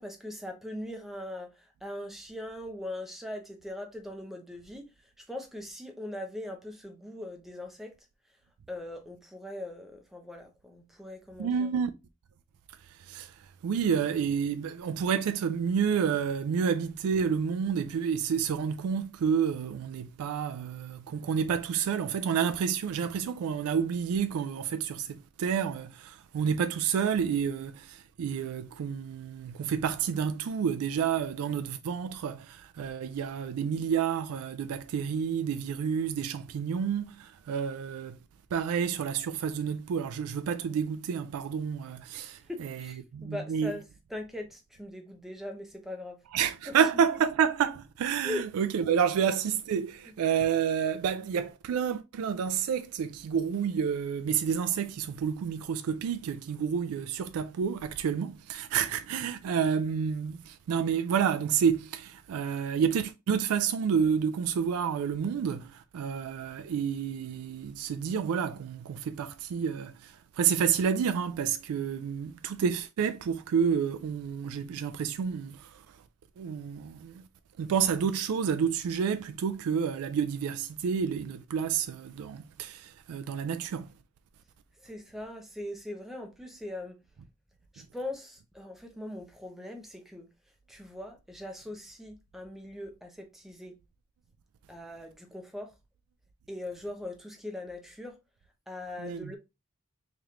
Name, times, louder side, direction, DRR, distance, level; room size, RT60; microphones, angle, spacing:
voice 1, 0.0-1.5 1.8-4.8 5.2-7.9 8.7-11.8 42.5-43.8 44.1-46.2 48.2-48.4 84.8-87.0 87.7-90.3 90.7-93.8 94.7-95.7 96.5-98.2 98.7-99.4, left 1 dB, ahead, 0.6 m, -40 dB
voice 2, 11.4-11.9 12.8-38.2 38.5-43.7 46.3-76.0 76.4-77.3 77.6-83.9 87.8-87.9 99.0-99.3, right 7 dB, 80° right, 0.3 m, -29 dB
3.2 x 3.0 x 3.6 m
head